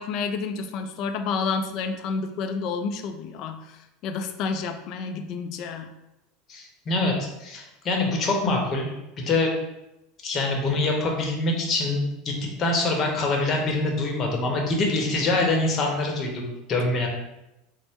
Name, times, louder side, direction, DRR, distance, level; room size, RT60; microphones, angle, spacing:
voice 1, 0.0-5.9, left 5 dB, 55° left, 6 dB, 0.4 m, -30 dB
voice 2, 6.5-9.5 10.2-12.3 12.6-16.4 16.7-17.1, left 2 dB, 35° left, 0 dB, 0.8 m, -25 dB
4.0 x 2.1 x 3.5 m, 0.94 s
supercardioid pair, 130°, 0 cm